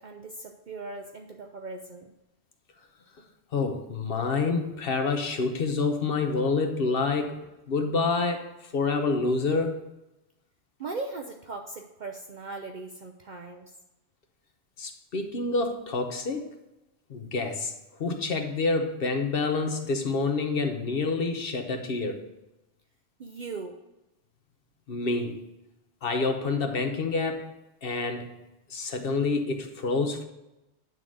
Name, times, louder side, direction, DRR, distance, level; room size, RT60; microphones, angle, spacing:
voice 1, 0.0-2.1 10.8-13.6 23.2-23.8, right 3 dB, 50° right, 3 dB, 0.7 m, -39 dB
voice 2, 3.5-7.4 7.7-9.8 14.8-16.5 17.1-17.7 18.0-22.2 24.9-25.4 26.0-27.5 27.8-28.3 28.7-30.2, left 3 dB, 60° left, 5 dB, 1.1 m, -27 dB
9.3 x 3.9 x 6.2 m, 0.98 s
omnidirectional pair, 1.1 m